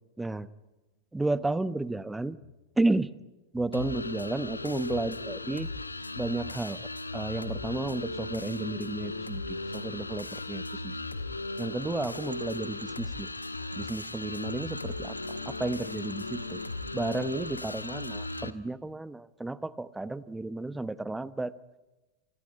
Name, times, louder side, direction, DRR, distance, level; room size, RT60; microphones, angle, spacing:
sound 1, 0.7-1.9 2.3-3.2 3.6-10.8 11.0-11.5 14.2-14.9 15.2-16.2 19.3-19.6 19.8-19.9, left 7 dB, 65° left, 3.2 m, -54 dB
voice 1, 1.1-2.4 2.8-3.1 3.5-5.7 6.2-6.8 7.1-10.9 11.6-13.3 13.8-15.2 15.5-16.6 16.9-21.5, right 2 dB, 5° right, 17 dB, 1.0 m, -32 dB
sound 2, 3.7-18.5, left 2 dB, 80° left, 1.3 m, -37 dB
sound 3, 11.7-18.5, right 3 dB, 80° right, 1.5 m, -50 dB
28.5 x 20.0 x 9.8 m, 1.1 s
figure-of-eight pair, 90°, 0 cm